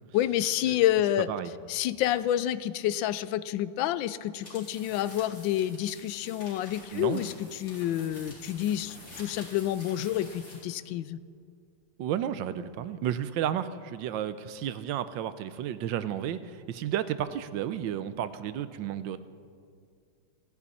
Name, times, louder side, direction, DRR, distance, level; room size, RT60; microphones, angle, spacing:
voice 1, 0.1-1.3 1.7-11.2, left 12 dB, 85° left, 15 dB, 1.3 m, -28 dB
sound 1, 4.4-10.7, left 1 dB, 45° left, 4.0 m, -48 dB
voice 2, 6.9-7.2 12.0-19.2, right 10 dB, 85° right, 13 dB, 1.4 m, -32 dB
28.0 x 9.7 x 4.2 m, 2.2 s
omnidirectional pair, 2.0 m